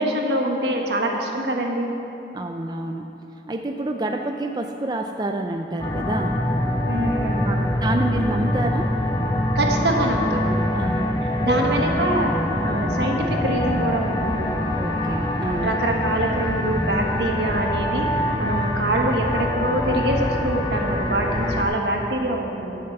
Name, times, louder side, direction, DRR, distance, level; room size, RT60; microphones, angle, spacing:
voice 1, 0.0-1.9 6.9-7.7 9.5-10.5 11.4-14.5 15.6-22.8, right 1 dB, 80° right, 1 dB, 1.3 m, -24 dB
voice 2, 2.3-3.1 3.5-6.4 7.4-9.0 10.7-11.6 12.6-12.9 14.8-15.7 18.4-18.7, right 2 dB, 25° right, 4 dB, 0.4 m, -28 dB
sound 1, 5.8-21.6, left 1 dB, 25° left, 0.7 m, -24 dB
10.5 x 6.6 x 7.0 m, 2.8 s
head